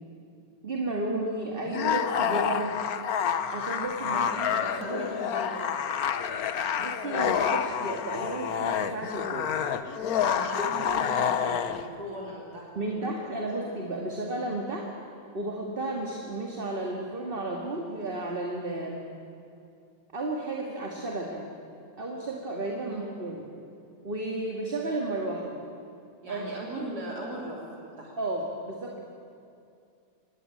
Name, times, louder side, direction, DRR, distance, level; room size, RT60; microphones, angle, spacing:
voice 1, 0.6-2.8 3.5-5.0 6.8-9.5 10.5-10.7 12.8-14.9 15.3-19.0 20.1-21.5 22.0-23.5 24.0-25.5 26.3-26.9 28.2-29.0, right 2 dB, 30° right, 0 dB, 2.2 m, -33 dB
sound 1, 1.7-11.8, left 8 dB, 55° left, 1.3 m, -28 dB
voice 2, 3.8-5.8 10.2-13.4 22.9-23.0 26.2-28.2, right 1 dB, 55° right, -3 dB, 3.7 m, -39 dB
25.5 x 20.0 x 8.8 m, 2.6 s
omnidirectional pair, 2.1 m